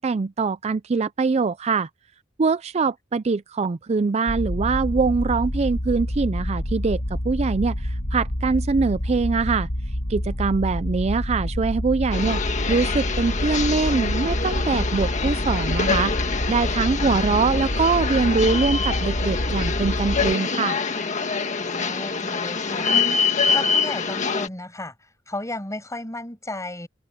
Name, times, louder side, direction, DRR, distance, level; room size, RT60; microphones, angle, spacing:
voice 1, 0.0-1.9 2.4-9.7 10.1-12.4 12.7-16.1 16.5-20.8, right 4 dB, 35° right, 0.4 m, -23 dB
sound 1, 4.3-20.3, equal, 65° left, 2.6 m, -27 dB
sound 2, 12.1-24.5, left 5 dB, 40° left, 1.7 m, -25 dB
voice 2, 17.0-17.6 21.6-22.9 23.5-26.9, left 2 dB, 15° left, 7.9 m, -34 dB
head